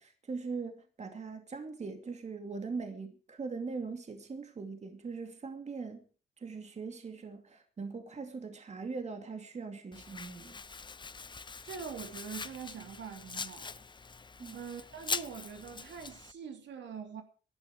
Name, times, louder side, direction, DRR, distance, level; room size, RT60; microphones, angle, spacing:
voice 1, 0.0-6.0 6.4-10.6 14.4-14.6, right 4 dB, 35° right, 2.6 m, -41 dB
Domestic sounds home sounds, 9.9-16.3, left 4 dB, 25° left, 0.7 m, -42 dB
voice 2, 11.6-13.8 14.5-17.2, right 7 dB, 65° right, 3.1 m, -44 dB
18.5 x 12.0 x 4.9 m
cardioid pair, 90°, 20 cm